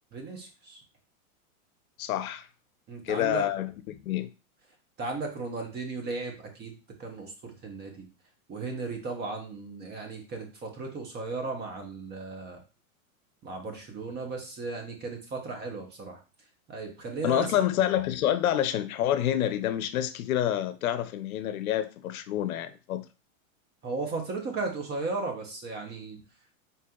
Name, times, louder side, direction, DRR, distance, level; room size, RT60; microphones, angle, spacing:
voice 1, 0.1-0.8 2.9-3.4 5.0-6.7 7.0-8.0 8.5-12.6 13.4-16.2 16.7-17.6 23.8-26.2, right 3 dB, 25° right, 1.0 m, -35 dB
voice 2, 2.0-2.5 3.0-4.3 17.2-23.1, left 11 dB, 75° left, 0.6 m, -28 dB
4.2 x 2.7 x 3.7 m
hypercardioid pair, 135°, 43 cm